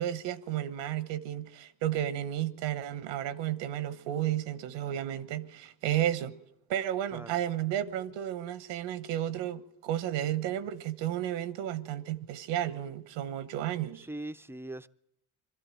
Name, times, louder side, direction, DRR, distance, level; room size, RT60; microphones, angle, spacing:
voice 1, 0.0-6.3 6.7-14.1, right 11 dB, 80° right, 1.3 m, -32 dB
voice 2, 7.1-7.4 13.9-14.9, right 1 dB, 5° right, 0.7 m, -41 dB
23.0 x 13.0 x 8.9 m
cardioid pair, 95°, 45 cm